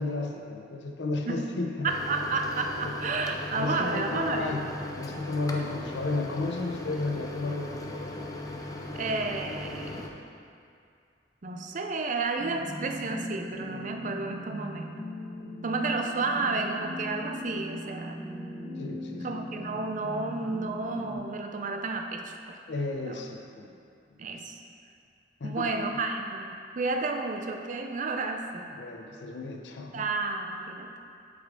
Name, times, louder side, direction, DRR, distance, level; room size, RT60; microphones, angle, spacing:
voice 1, 0.0-1.9 2.8-3.0 3.5-4.7 4.9-8.3 18.8-19.5 22.7-23.7 25.4-25.8 28.7-30.1, left 3 dB, 75° left, 3 dB, 0.6 m, -33 dB
Microwave oven, 1.8-10.1, left 2 dB, 20° left, 0.5 m, -38 dB
voice 2, 1.8-4.6 5.6-5.7 8.9-10.1 11.4-14.9 15.6-18.2 19.2-22.6 23.1-23.2 24.2-24.6 25.4-28.7 29.9-30.9, right 3 dB, 45° right, 4 dB, 0.5 m, -31 dB
sound 1, 12.4-21.1, left 1 dB, 50° left, 1.5 m, -39 dB
7.9 x 5.1 x 3.7 m, 2.4 s
head